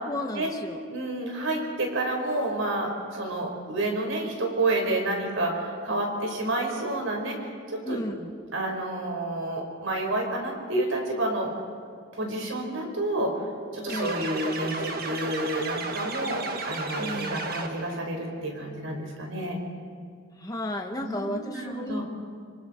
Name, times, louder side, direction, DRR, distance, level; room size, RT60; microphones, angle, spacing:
voice 1, 0.1-0.8 7.8-8.3 13.8-14.3 17.0-17.6 20.4-22.0, left 1 dB, 15° left, 2 dB, 1.1 m, -34 dB
voice 2, 0.9-8.0 8.5-11.5 12.2-13.3 13.7-19.6 21.0-22.0, right 2 dB, 75° right, 2 dB, 4.7 m, -29 dB
sound 1, 13.9-18.0, right 3 dB, 45° right, 1.6 m, -33 dB
26.0 x 26.0 x 4.4 m, 2.2 s
head